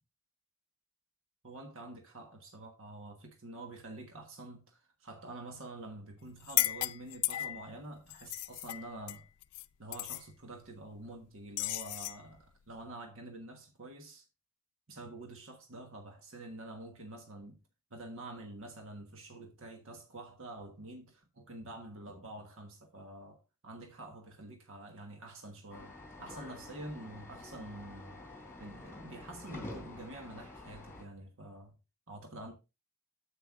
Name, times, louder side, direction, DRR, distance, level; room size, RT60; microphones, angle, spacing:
voice 1, 1.4-9.3 9.8-14.2 14.9-17.6 17.9-25.9 26.2-28.2 28.6-31.7 32.1-32.5, right 2 dB, 65° right, 1.3 m, -47 dB
sound 1, 6.4-7.7 8.1-9.7 9.9-10.2 11.6-12.2, left 16 dB, 85° left, 0.4 m, -34 dB
sound 2, 25.7-31.0, left 2 dB, 10° left, 3.2 m, -48 dB
9.5 x 8.1 x 2.5 m
head